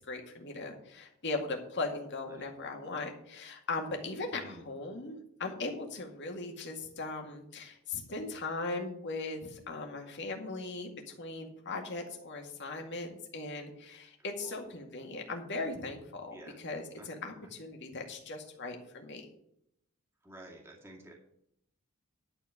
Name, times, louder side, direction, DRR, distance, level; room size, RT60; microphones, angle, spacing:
voice 1, 0.1-19.3, left 3 dB, 55° left, 3 dB, 2.1 m, -39 dB
voice 2, 20.2-21.1, right 1 dB, 10° right, -1 dB, 2.2 m, -50 dB
11.5 x 4.6 x 8.4 m, 0.74 s
head